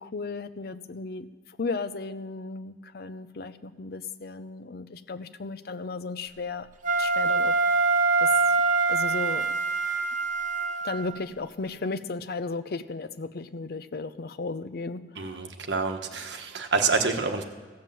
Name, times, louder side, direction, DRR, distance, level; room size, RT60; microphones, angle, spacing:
voice 1, 0.0-6.7 7.0-7.6 8.2-8.3 8.9-9.5 10.8-15.4, left 3 dB, 60° left, 12 dB, 0.6 m, -35 dB
Wind instrument woodwind instrument, 6.8-11.1, right 4 dB, 45° right, 0.8 m, -24 dB
voice 2, 15.2-17.4, right 4 dB, 80° right, 5 dB, 1.2 m, -27 dB
15.5 x 7.3 x 7.5 m, 1.4 s
head